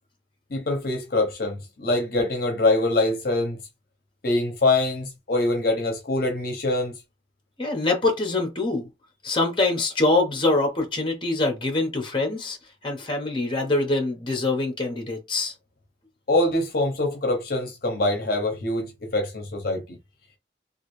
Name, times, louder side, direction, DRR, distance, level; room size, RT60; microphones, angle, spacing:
voice 1, 0.5-3.6 4.2-6.9 16.3-20.0, left 2 dB, 55° left, 0.8 m, -24 dB
voice 2, 7.6-8.9 9.2-12.6 12.8-15.5, left 2 dB, 30° left, 1.0 m, -24 dB
3.1 x 2.5 x 3.1 m
head